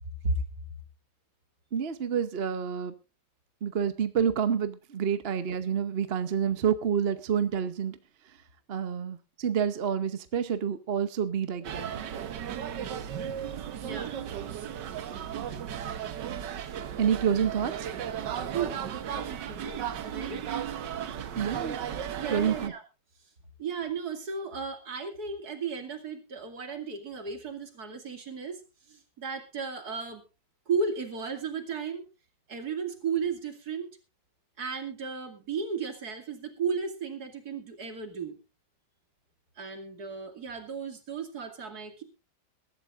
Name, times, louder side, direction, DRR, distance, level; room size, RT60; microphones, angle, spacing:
voice 1, 1.7-2.9 3.6-8.0 8.7-12.1 17.0-17.9 21.4-21.8 22.3-22.7, right 7 dB, 45° right, 0.9 m, -28 dB
sound 1, 11.6-22.7, right 9 dB, 85° right, 1.7 m, -35 dB
voice 2, 13.8-14.2 16.6-16.7 18.5-18.8 19.1-20.5 21.6-21.7 22.2-22.8 23.6-30.2 30.7-32.0 32.5-33.9 34.6-38.4 39.6-42.0, right 5 dB, 60° right, 2.9 m, -34 dB
22.0 x 12.0 x 2.5 m
omnidirectional pair, 1.8 m